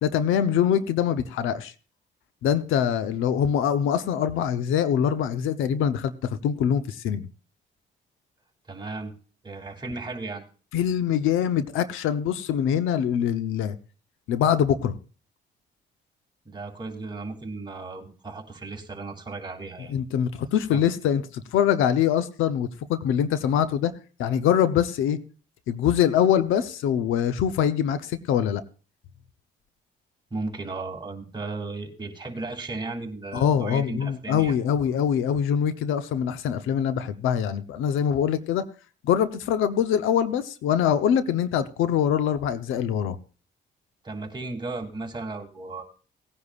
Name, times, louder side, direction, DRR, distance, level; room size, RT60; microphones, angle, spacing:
voice 1, 0.0-1.7 2.4-7.3 10.7-13.8 14.3-14.9 19.9-23.9 24.2-25.2 25.7-28.6 33.3-38.7 39.0-43.2, left 9 dB, 85° left, 0.9 m, -24 dB
voice 2, 8.7-9.1 9.4-10.4 16.4-19.9 20.7-20.8 30.3-34.6 44.0-45.8, right 3 dB, 20° right, 2.9 m, -35 dB
18.5 x 9.8 x 2.5 m
cardioid pair, 90°, 20 cm